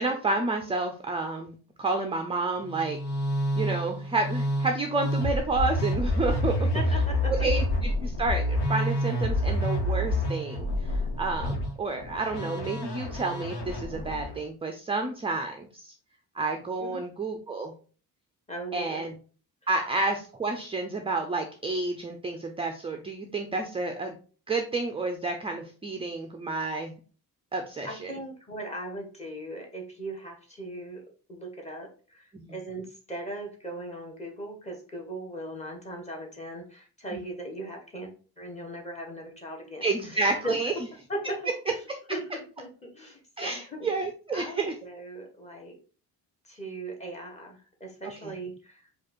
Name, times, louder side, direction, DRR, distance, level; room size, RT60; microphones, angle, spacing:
voice 1, 0.0-3.0 3.6-6.7 7.3-15.9 16.3-17.7 18.7-19.2 19.7-24.2 24.5-27.0 27.5-28.1 32.3-32.5 37.1-37.2 39.8-40.7 43.4-44.7 48.2-48.3, right 3 dB, 15° right, 5 dB, 0.4 m, -30 dB
Musical instrument, 2.6-14.4, left 1 dB, 85° left, 1.2 m, -28 dB
voice 2, 6.5-7.3 16.8-17.0 18.5-19.0 19.7-19.9 27.8-40.7 41.1-41.7 42.1-43.9 44.3-45.8 46.4-48.9, right 1 dB, 15° left, 0 dB, 1.2 m, -39 dB
4.9 x 2.4 x 4.3 m, 0.38 s
cardioid pair, 155°, 38 cm